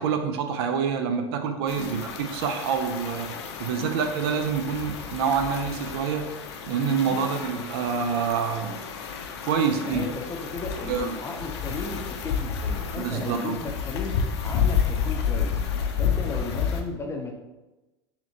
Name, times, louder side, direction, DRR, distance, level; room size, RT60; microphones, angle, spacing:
voice 1, 0.0-3.3 3.6-6.3 6.7-8.7 9.5-10.1 10.9-11.1 13.0-13.6, right 6 dB, 60° right, 6 dB, 0.4 m, -26 dB
sound 1, 1.7-16.8, left 7 dB, 70° left, 0.5 m, -30 dB
voice 2, 9.8-14.2 14.4-15.6 16.0-17.3, left 3 dB, 20° left, 1 dB, 0.7 m, -35 dB
4.1 x 2.8 x 2.9 m, 1.1 s
hypercardioid pair, 80°, 15 cm